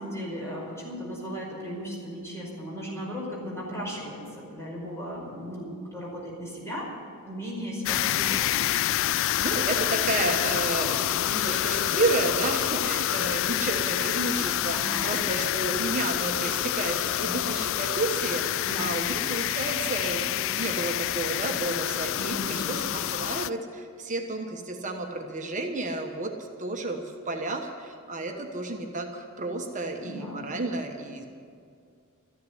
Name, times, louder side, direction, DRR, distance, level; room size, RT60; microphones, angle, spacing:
voice 1, 0.0-6.9 7.2-8.4 14.7-15.2 18.6-18.9 22.1-22.8 30.0-30.4, equal, 15° left, -4 dB, 5.3 m, -36 dB
sound 1, 7.9-23.5, left 13 dB, 60° left, 0.3 m, -27 dB
voice 2, 9.1-31.2, right 2 dB, 35° right, 3 dB, 1.2 m, -31 dB
14.0 x 10.5 x 9.6 m, 2.3 s
head